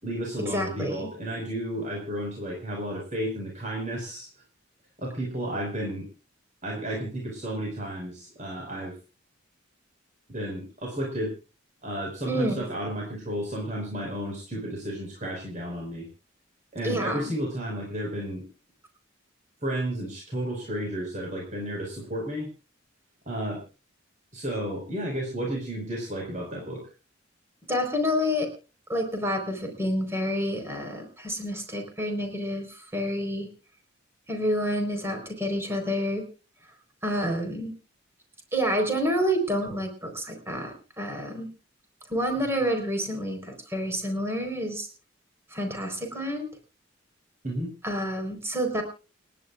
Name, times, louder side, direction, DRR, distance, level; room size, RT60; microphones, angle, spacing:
voice 1, 0.0-4.3 5.0-6.1 6.6-8.9 10.3-11.3 11.8-16.1 16.7-18.4 19.6-22.5 23.2-23.6 24.3-26.8 47.4-47.7, right 1 dB, 40° right, -1 dB, 5.0 m, -32 dB
voice 2, 0.5-1.1 12.3-12.6 16.8-17.2 27.7-28.5 28.9-33.5 34.3-36.2 37.0-37.7 38.5-41.5 42.1-44.9 45.5-46.5 47.8-48.8, equal, 15° right, 3 dB, 4.3 m, -28 dB
29.5 x 11.0 x 2.5 m, 0.34 s
head